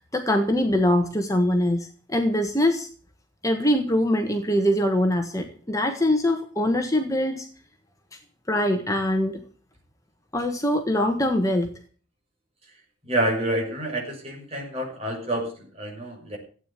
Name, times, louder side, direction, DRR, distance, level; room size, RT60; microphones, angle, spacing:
voice 1, 0.1-2.9 3.4-7.5 8.5-9.4 10.3-11.7, left 1 dB, 15° left, 4 dB, 1.4 m, -23 dB
voice 2, 13.0-16.4, right 1 dB, 30° right, 0 dB, 6.8 m, -28 dB
16.0 x 9.2 x 8.2 m, 0.42 s
head